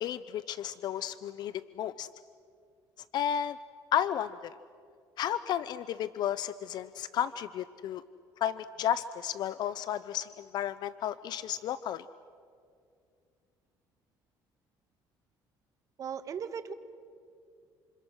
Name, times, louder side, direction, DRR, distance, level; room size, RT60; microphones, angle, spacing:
voice 1, 0.0-2.1 3.1-3.6 3.9-4.5 5.2-8.0 8.4-12.0, left 10 dB, 60° left, 15 dB, 0.6 m, -33 dB
voice 2, 16.0-16.7, right 7 dB, 45° right, 10 dB, 1.4 m, -37 dB
28.5 x 27.5 x 6.2 m, 2.3 s
cardioid pair, 115°, 8 cm